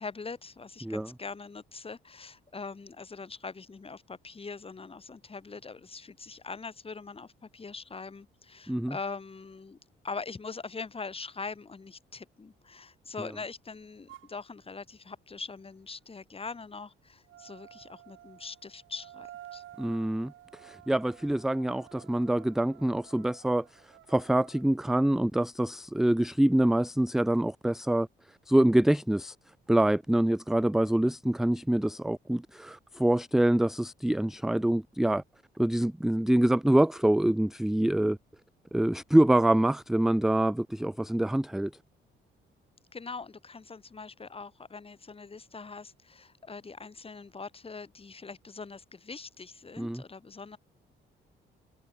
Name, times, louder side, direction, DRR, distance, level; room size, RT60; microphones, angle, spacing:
voice 1, 0.0-9.8 10.0-19.6 42.9-50.6, left 4 dB, 30° left, 3.0 m, -42 dB
sound 1, 14.1-14.3 17.3-24.7, right 13 dB, 80° right, 3.0 m, -52 dB
voice 2, 19.8-29.4 29.7-35.2 35.6-38.2 38.7-41.7 49.8-50.0, right 1 dB, ahead, 0.4 m, -25 dB
cardioid pair, 90°, 20 cm